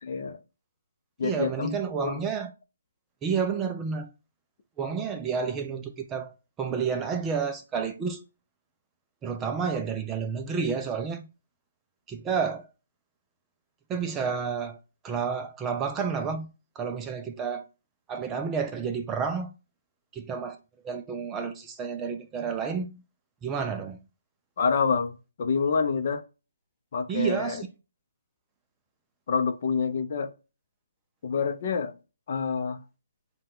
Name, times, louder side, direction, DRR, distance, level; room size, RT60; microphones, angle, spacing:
voice 1, 0.1-0.4 1.2-2.2 24.6-26.2 26.9-27.6 29.3-30.3 31.2-31.9 32.3-32.8, left 5 dB, 45° left, 0.6 m, -27 dB
voice 2, 1.2-2.5 3.2-4.1 4.8-8.2 9.2-11.3 12.1-12.7 13.9-14.8 15.0-16.5 16.8-17.6 18.1-19.5 20.1-20.6 20.8-23.0 23.4-24.0 27.1-27.7, right 6 dB, 10° right, 0.3 m, -30 dB
5.3 x 2.2 x 3.5 m
hypercardioid pair, 165°, 0 cm